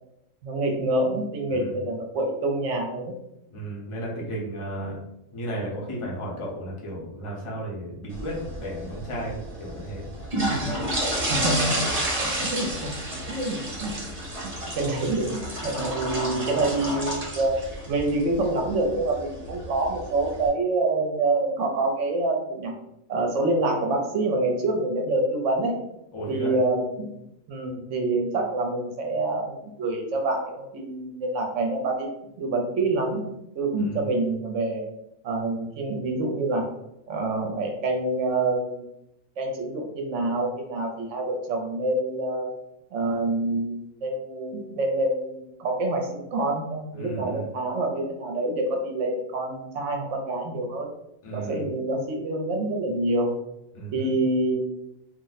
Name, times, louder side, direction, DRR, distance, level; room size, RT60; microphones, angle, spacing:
voice 1, 0.4-3.2 11.3-11.7 12.2-12.9 13.3-13.9 14.4-17.6 17.9-22.7 23.1-25.7 26.3-27.1 27.5-32.1 32.4-34.8 35.2-36.7 37.1-38.9 39.4-42.5 42.9-50.9 51.3-53.3 53.9-54.6, right 2 dB, 65° right, 2 dB, 0.9 m, -26 dB
voice 2, 1.5-1.8 3.5-5.0 5.3-10.1 10.5-10.7 26.1-26.5 33.8-34.0 46.9-47.5 51.2-51.7 53.7-54.1, right 1 dB, 30° left, -3 dB, 0.6 m, -34 dB
sound 1, 8.1-20.5, right 1 dB, 30° right, 0.9 m, -31 dB
2.5 x 2.0 x 3.9 m, 0.85 s
omnidirectional pair, 1.4 m